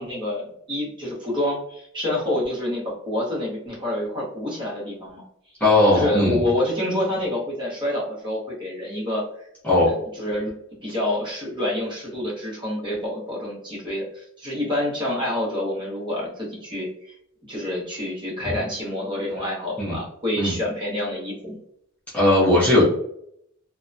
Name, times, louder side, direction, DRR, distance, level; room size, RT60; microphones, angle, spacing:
voice 1, 0.0-5.2 5.9-9.5 9.8-10.5 10.8-17.1 17.5-21.6, left 1 dB, 20° right, -5 dB, 1.0 m, -27 dB
voice 2, 5.6-6.4 9.6-9.9 19.8-20.0 20.4-20.6 22.1-22.8, left 1 dB, 5° left, -9 dB, 0.7 m, -18 dB
2.8 x 2.2 x 2.5 m, 0.71 s
head